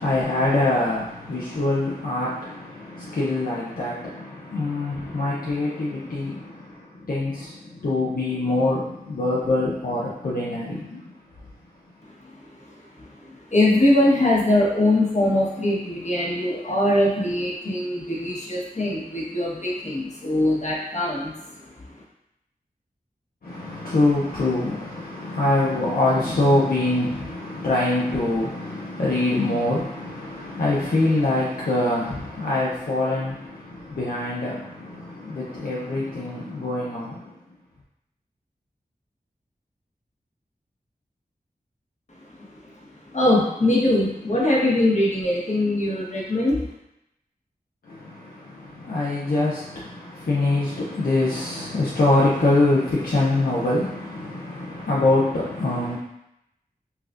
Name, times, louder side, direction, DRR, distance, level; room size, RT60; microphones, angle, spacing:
voice 1, 0.0-11.0 23.4-37.4 47.8-56.0, left 2 dB, 65° left, -6 dB, 0.7 m, -24 dB
voice 2, 12.0-22.0 42.4-42.6 43.0-46.6, left 1 dB, 45° left, -4 dB, 1.1 m, -22 dB
5.7 x 2.4 x 2.4 m, 0.83 s
wide cardioid pair, 65°, 16 cm